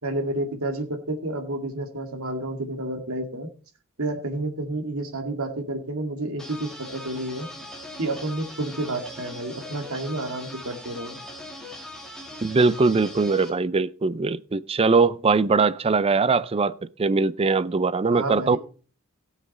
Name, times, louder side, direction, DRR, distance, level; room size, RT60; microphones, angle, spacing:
voice 1, 0.0-3.5 4.0-7.5 8.0-11.2 18.1-18.6, right 2 dB, 70° right, 2.1 m, -30 dB
sound 1, 6.4-13.5, left 1 dB, ahead, 2.3 m, -40 dB
voice 2, 12.4-16.7 17.0-18.6, right 4 dB, 25° right, 0.4 m, -21 dB
16.5 x 7.4 x 4.2 m
head